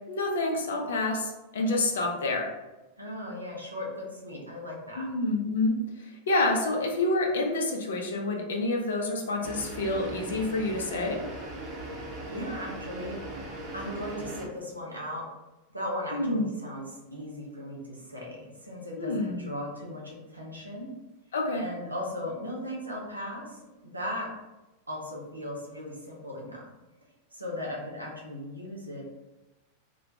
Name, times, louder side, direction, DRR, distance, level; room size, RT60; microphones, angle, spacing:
voice 1, 0.1-2.5 5.0-11.2 16.1-16.5 19.0-19.4 21.3-21.7, left 2 dB, 65° left, 1 dB, 0.4 m, -28 dB
voice 2, 3.0-5.1 12.3-13.2 13.7-15.2 15.7-20.9 21.6-24.3 24.9-26.7 27.3-29.0, left 1 dB, 85° right, -2 dB, 0.6 m, -37 dB
sound 1, 9.4-14.5, right 2 dB, 30° right, 0.6 m, -39 dB
2.1 x 2.1 x 2.7 m, 1.0 s
figure-of-eight pair, 90°, 0 cm